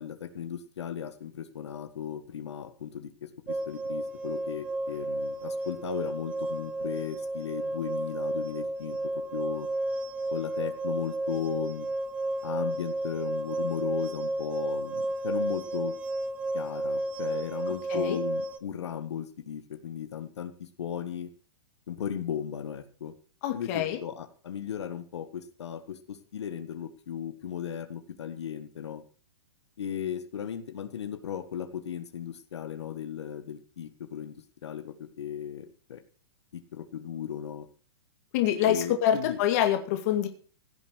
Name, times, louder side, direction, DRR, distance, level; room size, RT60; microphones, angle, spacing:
voice 1, 0.0-9.0 9.3-9.7 10.3-11.9 12.4-15.9 16.5-21.3 21.9-23.1 23.5-29.0 29.8-34.4 34.6-36.0 36.5-37.7 38.6-39.4, left 8 dB, 80° left, 9 dB, 1.8 m, -36 dB
sound 1, 3.5-18.6, right 2 dB, 10° right, 0.5 m, -32 dB
voice 2, 23.4-24.0 38.3-40.3, left 10 dB, 35° left, 6 dB, 2.1 m, -26 dB
16.0 x 7.3 x 6.4 m, 0.42 s
hypercardioid pair, 165°, 14 cm